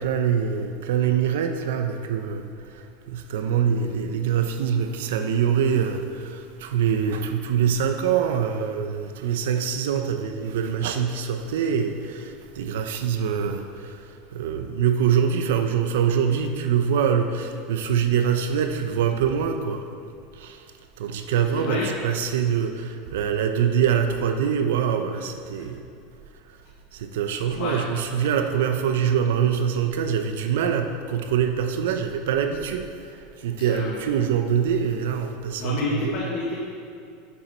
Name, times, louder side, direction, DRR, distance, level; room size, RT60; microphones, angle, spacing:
voice 1, 0.0-2.5 3.1-14.0 14.3-19.8 20.4-20.6 21.0-25.8 26.9-32.9 33.4-36.3, right 8 dB, 80° right, 7 dB, 0.8 m, -24 dB
voice 2, 21.5-21.9 27.5-27.8 33.6-34.0 35.6-36.6, left 3 dB, 50° left, -5 dB, 1.5 m, -29 dB
9.4 x 7.2 x 4.5 m, 2.5 s
supercardioid pair, 165°, 0 cm